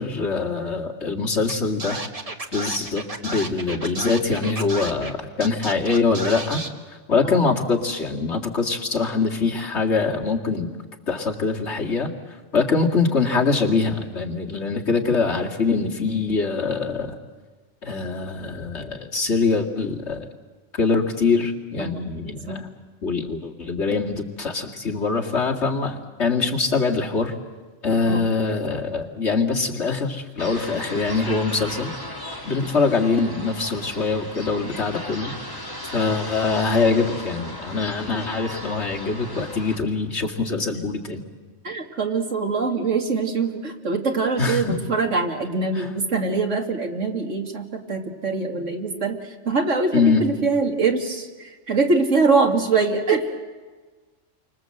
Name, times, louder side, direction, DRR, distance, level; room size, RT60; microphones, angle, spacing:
voice 1, 0.0-2.0 2.5-6.6 7.1-10.8 11.1-12.1 12.5-17.2 17.8-20.3 20.8-22.7 23.0-27.3 27.8-31.9 32.5-35.3 35.9-41.2 44.4-44.8 45.8-45.9 49.9-50.2, left 4 dB, 60° left, 0 dB, 2.6 m, -23 dB
Scratching (performance technique), 1.5-1.6 1.8-5.1 5.4-6.7, right 2 dB, 30° right, 1.5 m, -32 dB
sound 1, 30.4-39.8, left 1 dB, 15° left, 3.5 m, -36 dB
voice 2, 41.6-53.3, right 4 dB, 70° right, 3 dB, 2.5 m, -23 dB
30.0 x 24.5 x 7.8 m, 1.4 s
omnidirectional pair, 1.3 m